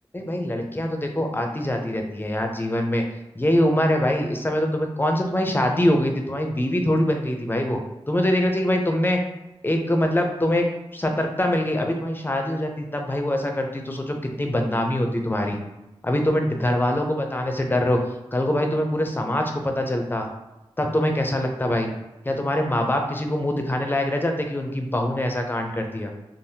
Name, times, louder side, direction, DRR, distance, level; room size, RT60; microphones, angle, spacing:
voice 1, 0.1-3.0 3.3-7.8 8.1-9.2 9.6-10.7 10.9-15.6 16.0-18.0 18.3-20.3 20.8-21.9 22.2-26.1, left 1 dB, 20° left, 3 dB, 0.5 m, -23 dB
3.3 x 2.0 x 2.7 m, 0.97 s
cardioid pair, 45°, 10 cm